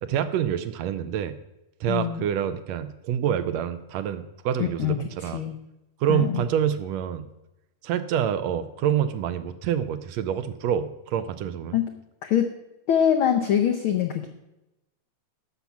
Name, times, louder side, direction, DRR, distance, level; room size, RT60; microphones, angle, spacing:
voice 1, 0.0-1.4 1.8-5.4 6.0-7.3 7.8-11.8, right 9 dB, 75° right, 11 dB, 1.7 m, -27 dB
voice 2, 1.9-2.2 4.6-5.5 6.1-6.4 11.7-11.9 12.2-12.5 12.9-14.3, left 9 dB, 80° left, 5 dB, 1.1 m, -24 dB
12.0 x 5.8 x 7.2 m, 0.93 s
omnidirectional pair, 3.3 m